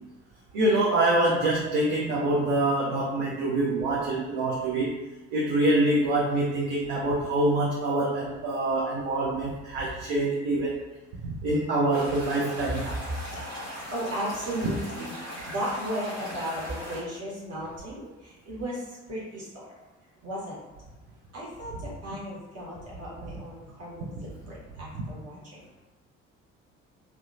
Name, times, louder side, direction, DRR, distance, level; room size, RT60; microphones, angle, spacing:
voice 1, 0.5-4.9 5.3-10.8 11.2-12.9, right 2 dB, 55° right, -4 dB, 0.6 m, -25 dB
sound 1, 11.9-17.0, equal, 85° right, 0.9 m, -39 dB
voice 2, 12.8-19.7 20.2-20.6 21.3-25.6, equal, 40° right, -6 dB, 1.2 m, -35 dB
2.7 x 2.1 x 2.5 m, 1.1 s
figure-of-eight pair, 50°, 40 cm